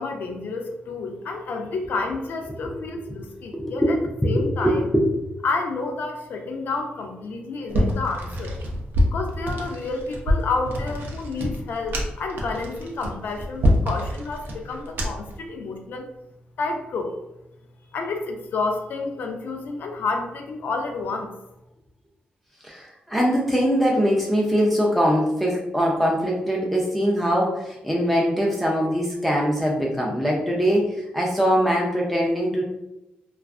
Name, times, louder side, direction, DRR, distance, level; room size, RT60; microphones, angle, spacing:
voice 1, 0.0-4.0 4.2-4.9 5.4-8.5 9.1-16.1 16.6-17.1 17.9-21.3, left 3 dB, 65° left, 3 dB, 0.4 m, -30 dB
voice 2, 3.5-3.9 4.2-5.1 22.6-32.6, equal, ahead, -3 dB, 0.4 m, -22 dB
sound 1, 7.7-15.4, equal, 70° right, 0.5 m, -26 dB
2.4 x 2.3 x 2.3 m, 0.92 s
wide cardioid pair, 135°, 3 cm